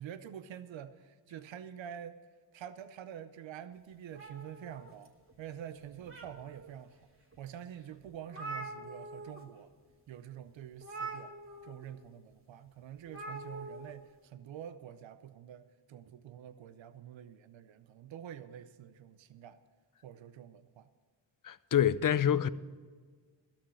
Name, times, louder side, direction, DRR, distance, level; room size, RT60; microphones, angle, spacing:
voice 1, 0.0-2.2 2.5-7.1 7.4-9.7 10.1-11.3 11.6-19.6 20.0-20.9, right 9 dB, 90° right, 0.7 m, -47 dB
sound 1, 4.1-5.3 5.8-6.7 7.3-7.4 7.8-7.9 8.0-9.4 9.7-9.9 10.8-11.9 13.1-13.9, right 3 dB, 30° right, 2.4 m, -44 dB
voice 2, 21.4-22.5, left 9 dB, 45° left, 0.6 m, -27 dB
12.5 x 7.3 x 8.7 m
cardioid pair, 50°, 44 cm